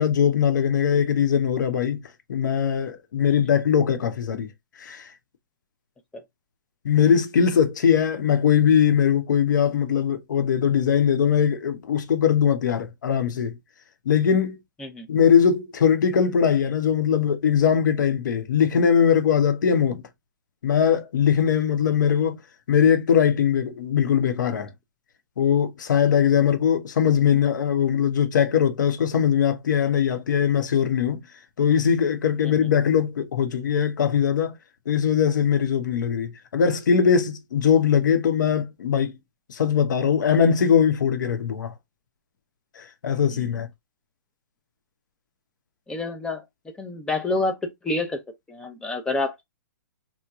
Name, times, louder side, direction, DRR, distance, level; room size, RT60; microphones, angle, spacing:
voice 1, 0.0-2.0 2.3-4.5 4.8-5.1 6.8-13.6 14.1-14.6 15.1-20.0 20.6-22.4 22.7-24.7 25.4-31.2 31.6-34.5 34.9-39.2 39.5-41.7 42.8-43.7, left 8 dB, 70° left, 0.8 m, -21 dB
voice 2, 45.9-46.4 46.8-48.2 48.5-49.4, left 2 dB, 5° left, 0.7 m, -28 dB
3.1 x 2.1 x 3.5 m
hypercardioid pair, 135°, 10 cm